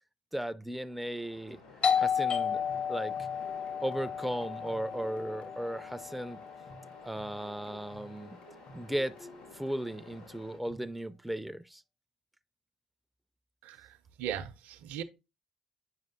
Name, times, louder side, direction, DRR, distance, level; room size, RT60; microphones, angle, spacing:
voice 1, 0.3-1.6 1.9-2.6 2.9-3.2 3.8-6.4 7.0-8.4 8.7-9.3 9.5-11.8, right 1 dB, 5° right, 0.4 m, -36 dB
Waves surf, 0.7-10.6, left 3 dB, 85° left, 1.8 m, -53 dB
Doorbell, 1.8-7.2, left 7 dB, 45° left, 0.8 m, -33 dB
sound 1, 2.4-10.9, equal, 60° left, 1.4 m, -54 dB
voice 2, 13.6-15.0, right 10 dB, 65° right, 0.6 m, -39 dB
8.2 x 5.2 x 2.6 m
hypercardioid pair, 50°, 3 cm